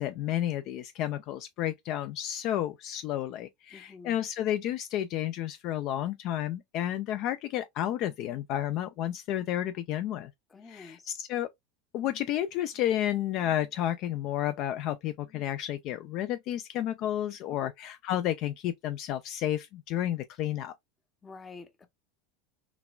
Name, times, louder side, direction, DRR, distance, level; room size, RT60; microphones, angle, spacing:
voice 1, 0.0-10.3 10.7-11.5 11.9-20.7, left 12 dB, 55° left, 0.3 m, -31 dB
voice 2, 3.7-4.2 10.5-11.1 17.6-17.7 21.2-21.9, left 4 dB, 20° left, 0.6 m, -48 dB
3.9 x 2.2 x 2.3 m
supercardioid pair, 115°, 0 cm